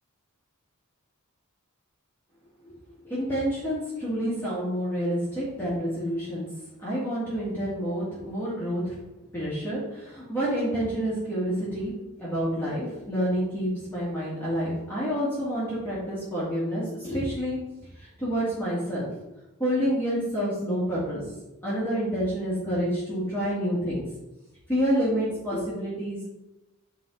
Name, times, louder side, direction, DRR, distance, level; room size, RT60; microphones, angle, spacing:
voice 1, 3.0-6.5 6.8-9.0 9.3-11.9 12.2-17.6 17.9-19.1 19.6-21.2 21.6-24.1 24.7-26.3, equal, 10° left, -10 dB, 2.0 m, -28 dB
9.1 x 3.6 x 3.9 m, 0.96 s
head